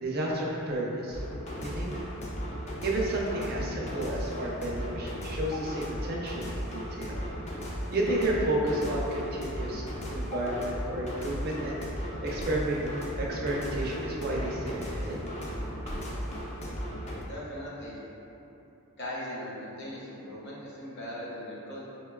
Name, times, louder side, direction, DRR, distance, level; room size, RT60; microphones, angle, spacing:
voice 1, 0.0-1.2 1.6-2.0 2.8-7.2 7.9-9.8 10.1-11.8 12.2-12.8 13.2-15.2, right 1 dB, 45° right, -4 dB, 0.5 m, -31 dB
sound 1, 1.1-17.2, equal, 30° left, 0.4 m, -36 dB
voice 2, 17.3-18.0 19.0-21.9, equal, 50° left, -7 dB, 0.8 m, -39 dB
5.1 x 2.2 x 2.2 m, 3.0 s
head